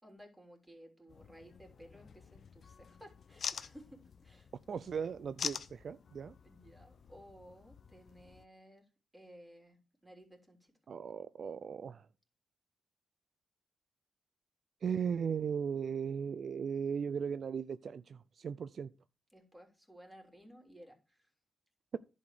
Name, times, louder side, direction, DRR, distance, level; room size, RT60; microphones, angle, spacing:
voice 1, 0.0-4.5 6.4-8.8 9.1-10.7 19.3-21.3, equal, 10° right, 3.2 m, -57 dB
sound 1, 1.1-8.5, left 6 dB, 60° left, 0.6 m, -46 dB
voice 2, 4.7-6.3 10.9-12.1 14.8-18.9, right 7 dB, 60° right, 0.4 m, -37 dB
11.0 x 4.2 x 6.4 m
cardioid pair, 85°, 0 cm